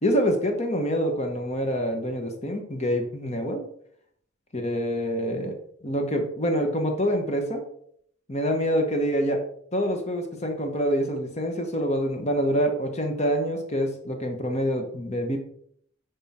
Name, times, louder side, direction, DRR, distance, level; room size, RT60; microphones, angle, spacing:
voice 1, 0.0-3.7 4.5-7.6 8.3-9.4 9.7-15.4, equal, 30° left, 4 dB, 1.1 m, -26 dB
9.4 x 3.6 x 4.3 m, 0.66 s
head